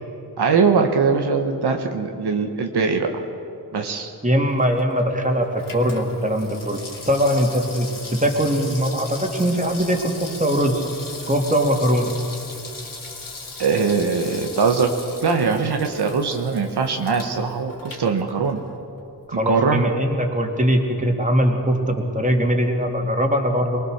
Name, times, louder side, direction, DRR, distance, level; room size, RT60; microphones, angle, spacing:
voice 1, 0.4-3.2 3.7-4.1 13.6-14.9 15.2-18.6 19.5-19.9, right 5 dB, 75° right, 4 dB, 1.4 m, -21 dB
voice 2, 4.2-6.8 7.1-10.8 11.3-12.1 19.3-23.8, equal, 20° right, 2 dB, 3.0 m, -21 dB
Water tap faucet / Sink (filling or washing), 4.5-18.8 19.1-19.2, left 3 dB, 55° left, 3.1 m, -38 dB
23.5 x 19.5 x 6.6 m, 2.7 s
cardioid pair, 60°, 40 cm